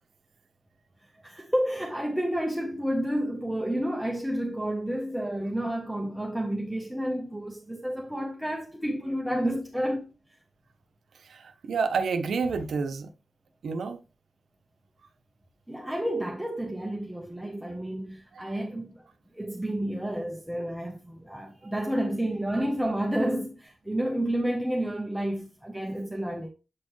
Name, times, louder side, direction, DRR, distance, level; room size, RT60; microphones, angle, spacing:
voice 1, 1.2-10.1 15.7-19.0 19.3-26.5, right 1 dB, 5° right, 0.9 m, -30 dB
voice 2, 11.3-13.1 13.6-14.0 18.3-18.6 21.8-22.0, right 5 dB, 90° right, 0.7 m, -30 dB
7.7 x 4.2 x 3.1 m
cardioid pair, 65°, 0 cm